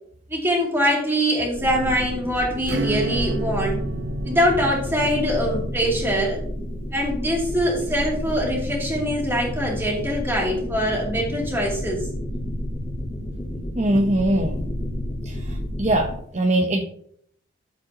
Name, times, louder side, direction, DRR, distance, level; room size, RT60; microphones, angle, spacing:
voice 1, 0.3-3.8 4.2-6.4 6.9-12.1, equal, 10° right, -3 dB, 3.0 m, -23 dB
sound 1, 1.5-16.2, equal, 20° left, 3.4 m, -30 dB
Acoustic guitar / Strum, 2.6-8.9, right 2 dB, 70° right, 0.8 m, -33 dB
voice 2, 13.8-14.6 15.2-15.3 15.8-16.8, right 1 dB, 35° right, 1 dB, 0.9 m, -21 dB
12.5 x 7.4 x 3.0 m, 0.66 s
head